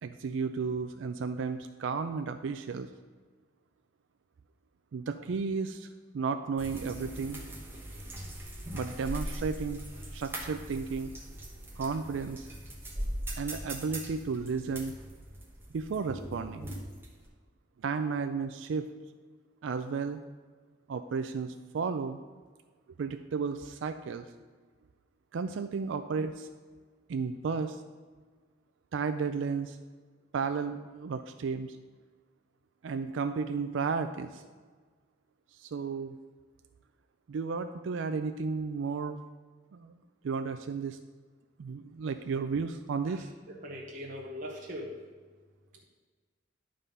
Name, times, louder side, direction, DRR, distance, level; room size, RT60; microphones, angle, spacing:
voice 1, 0.0-2.9 4.9-5.9 6.1-7.4 8.7-9.8 10.1-11.1 11.8-12.5 13.4-14.9 15.7-16.7 17.8-18.9 19.6-20.2 20.9-22.2 23.0-24.3 25.3-26.5 27.1-27.8 28.9-29.8 30.3-31.8 32.8-34.4 35.5-36.2 37.3-39.2 39.7-40.0 40.2-41.0 41.6-43.3, right 5 dB, 80° right, 8 dB, 0.4 m, -33 dB
sound 1, 6.6-17.3, right 1 dB, 10° right, 1.0 m, -40 dB
voice 2, 43.6-44.9, equal, 40° right, -2 dB, 0.9 m, -40 dB
11.0 x 3.8 x 5.4 m, 1.5 s
head